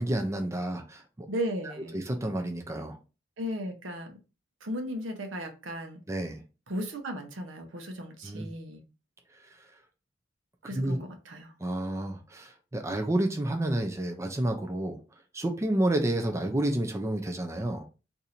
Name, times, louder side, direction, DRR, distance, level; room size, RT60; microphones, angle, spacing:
voice 1, 0.0-1.3 1.9-3.0 6.1-6.4 8.2-8.5 9.5-9.6 10.7-11.0 11.6-15.0 15.3-17.9, right 1 dB, 15° right, 0.4 m, -30 dB
voice 2, 1.3-2.0 3.4-4.2 4.6-6.0 6.7-8.8 10.6-11.5, equal, 80° right, 0.8 m, -36 dB
2.6 x 2.6 x 4.2 m
head